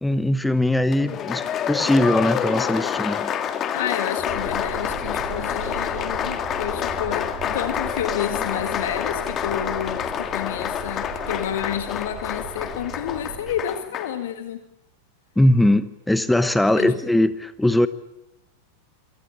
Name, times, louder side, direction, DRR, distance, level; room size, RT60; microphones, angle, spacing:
voice 1, 0.0-3.3 15.4-17.9, left 1 dB, 5° left, 1.0 m, -20 dB
Applause, 0.9-14.2, left 8 dB, 30° left, 2.1 m, -28 dB
voice 2, 3.7-14.6 16.8-16.9, left 10 dB, 55° left, 1.9 m, -30 dB
sound 1, 4.2-13.7, right 6 dB, 30° right, 7.4 m, -38 dB
27.0 x 18.0 x 8.7 m
figure-of-eight pair, 90°, 0 cm